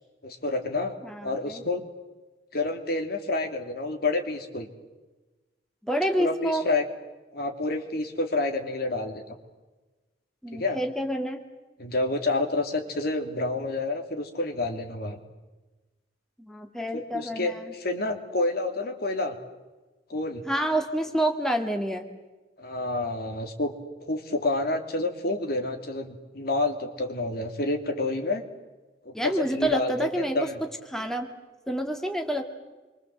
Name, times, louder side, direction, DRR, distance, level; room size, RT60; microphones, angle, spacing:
voice 1, 0.2-1.0 1.2-1.8 2.5-4.7 6.2-6.8 7.3-9.4 10.5-10.8 11.8-15.2 16.9-19.4 20.1-20.4 22.6-23.7 24.0-28.4 29.0-30.1 30.3-30.6, left 2 dB, 60° left, 5 dB, 2.9 m, -29 dB
voice 2, 1.0-1.6 5.8-6.6 10.4-11.4 16.4-17.7 20.5-22.1 29.1-30.4 30.9-31.3 31.7-32.4, right 1 dB, 5° left, 4 dB, 2.0 m, -28 dB
27.5 x 24.0 x 7.8 m, 1.2 s
head